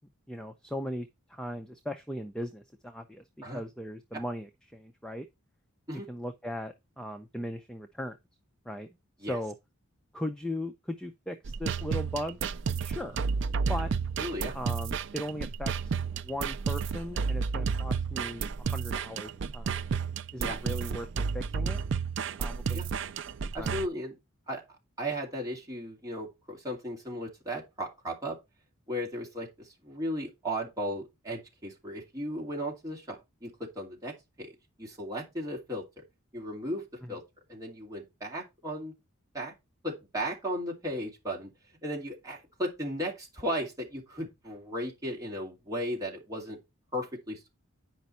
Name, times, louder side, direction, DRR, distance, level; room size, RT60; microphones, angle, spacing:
voice 1, 0.3-5.3 5.9-8.2 8.6-8.9 9.2-9.5 10.1-12.4 12.8-13.2 13.7-13.9 14.5-19.7 20.3-21.8 22.3-22.9 23.6-23.8 37.0-37.2, left 1 dB, 5° left, 0.5 m, -38 dB
sound 1, 11.4-23.9, right 5 dB, 55° right, 0.4 m, -32 dB
voice 2, 14.2-14.5 20.4-20.6 22.7-22.9 23.5-24.2 24.5-24.6 25.0-28.4 28.9-36.0 36.3-37.2 37.5-38.9 39.3-39.5 39.8-41.5 41.8-46.6 46.9-47.5, equal, 15° right, 2.5 m, -36 dB
9.3 x 5.2 x 4.3 m
head